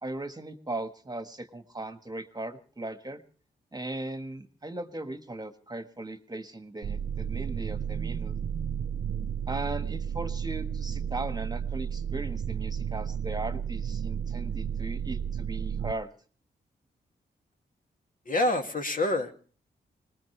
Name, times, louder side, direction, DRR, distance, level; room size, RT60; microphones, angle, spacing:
voice 1, 0.0-3.2 3.7-8.4 9.5-16.1, right 2 dB, 20° right, 8 dB, 1.6 m, -38 dB
sound 1, 6.8-15.9, right 8 dB, 80° right, 0.7 m, -32 dB
voice 2, 18.3-19.3, left 2 dB, 45° left, 3 dB, 2.5 m, -26 dB
21.0 x 19.5 x 3.3 m, 0.42 s
supercardioid pair, 45°, 19 cm